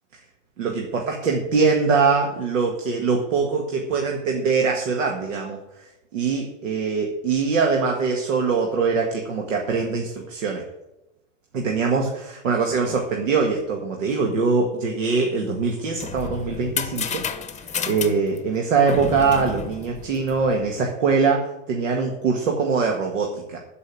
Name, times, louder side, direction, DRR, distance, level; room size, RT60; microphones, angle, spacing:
voice 1, 0.6-10.7 11.5-17.3 17.5-23.6, right 4 dB, 90° right, 1 dB, 1.9 m, -23 dB
sound 1, 15.7-20.7, left 7 dB, 20° left, 1.3 m, -32 dB
13.5 x 5.5 x 8.7 m, 0.93 s
hypercardioid pair, 100°, 38 cm